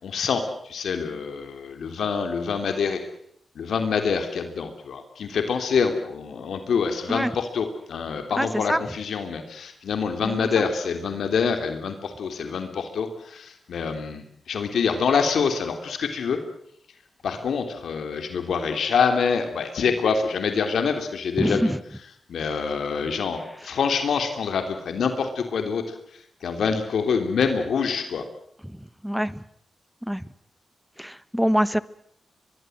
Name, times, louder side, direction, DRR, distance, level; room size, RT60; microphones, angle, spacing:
voice 1, 0.0-3.0 3.5-16.4 17.2-21.7 22.3-25.8 26.4-28.2, left 6 dB, 85° left, 7 dB, 3.1 m, -26 dB
voice 2, 8.4-8.8 10.2-10.6 21.4-21.8 23.6-23.7 28.6-29.4 30.0-30.2 31.0-31.8, equal, 5° right, 17 dB, 1.1 m, -25 dB
23.5 x 22.5 x 7.9 m, 0.71 s
cardioid pair, 70°, 0 cm